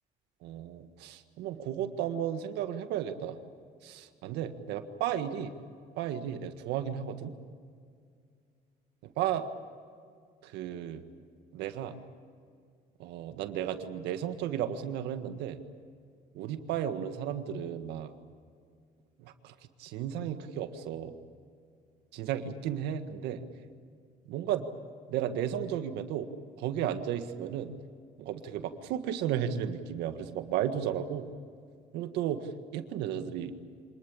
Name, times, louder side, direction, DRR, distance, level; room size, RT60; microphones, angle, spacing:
voice 1, 0.4-3.4 3.8-5.5 6.0-7.3 9.2-9.4 10.4-11.0 11.5-12.0 13.0-15.6 16.3-18.1 19.2-19.5 19.8-21.1 22.1-23.4 24.2-24.7 25.1-26.3 26.6-27.7 28.2-31.3 31.9-33.5, right 10 dB, 90° right, 8 dB, 1.7 m, -34 dB
25.5 x 20.0 x 8.8 m, 2.2 s
cardioid pair, 110°, 17 cm